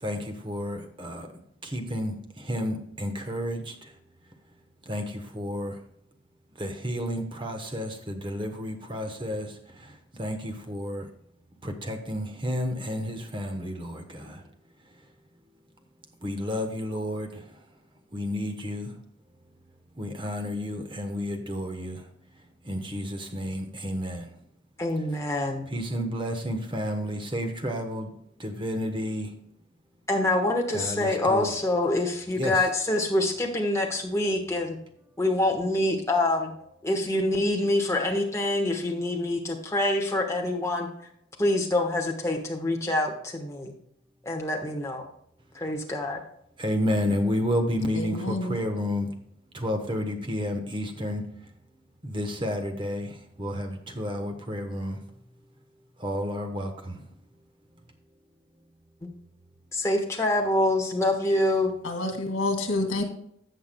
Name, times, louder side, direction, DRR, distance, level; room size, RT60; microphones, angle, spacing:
voice 1, 0.0-1.3 1.6-3.9 4.8-5.8 6.5-11.1 11.6-14.4 16.2-17.6 18.1-18.9 20.0-22.1 22.6-24.3 25.7-28.1 28.4-29.3 30.7-31.5 32.4-32.6 46.6-49.1 49.5-51.2 52.0-55.0 56.0-57.0, equal, 25° right, 1.1 m, -31 dB
voice 2, 24.8-25.7 30.1-34.8 35.2-36.5 36.8-40.9 41.4-43.7 44.2-45.1 45.5-46.2 59.0-59.1 59.7-61.7, left 1 dB, 15° left, 1.3 m, -26 dB
voice 3, 48.0-48.5 61.8-63.0, left 2 dB, 90° left, 2.1 m, -28 dB
16.0 x 5.8 x 2.3 m
head